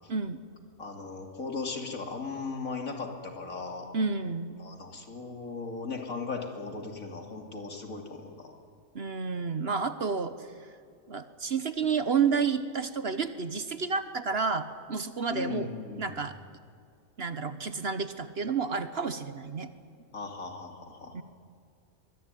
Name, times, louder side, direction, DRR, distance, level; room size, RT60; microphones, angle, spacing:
voice 1, 0.1-0.4 3.9-4.6 8.9-10.5 11.1-15.7 16.0-16.4 17.2-19.7 21.1-21.2, right 5 dB, 50° right, 11 dB, 1.2 m, -30 dB
voice 2, 0.8-3.9 4.6-8.5 15.3-16.2 20.1-21.2, left 4 dB, 70° left, 2 dB, 3.2 m, -37 dB
24.0 x 22.0 x 9.2 m, 2.3 s
omnidirectional pair, 1.5 m